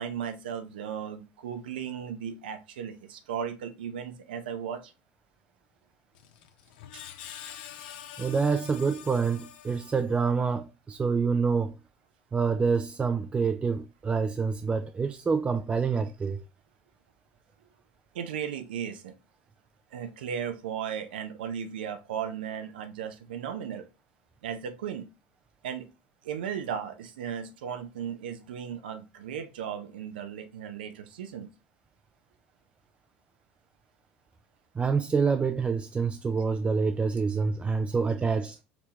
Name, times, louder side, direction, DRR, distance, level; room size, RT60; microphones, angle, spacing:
voice 1, 0.0-4.9 6.9-7.0 18.1-19.1 19.9-23.9 24.4-25.0 25.6-25.9 26.2-31.5, right 8 dB, 85° right, 0.6 m, -36 dB
Screech, 6.1-10.4, left 10 dB, 75° left, 0.4 m, -46 dB
voice 2, 8.2-11.8 12.3-16.4 34.8-38.6, right 5 dB, 25° right, 0.4 m, -27 dB
4.4 x 2.8 x 2.9 m
hypercardioid pair, 75°, 5 cm